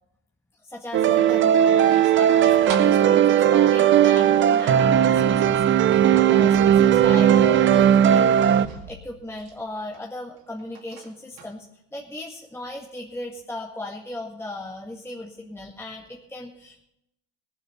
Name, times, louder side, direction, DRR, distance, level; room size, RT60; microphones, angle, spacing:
voice 1, 0.6-11.7 11.9-16.8, left 1 dB, 5° left, -1 dB, 1.8 m, -37 dB
sound 1, 0.9-8.7, right 10 dB, 25° right, 0.5 m, -17 dB
sound 2, 2.4-3.2 3.6-3.7 3.9-4.0 4.9-5.0 6.4-7.5 8.6-10.1 10.4-11.5, right 5 dB, 80° right, 2.5 m, -40 dB
19.5 x 7.3 x 5.7 m, 0.81 s
hypercardioid pair, 85°, 47 cm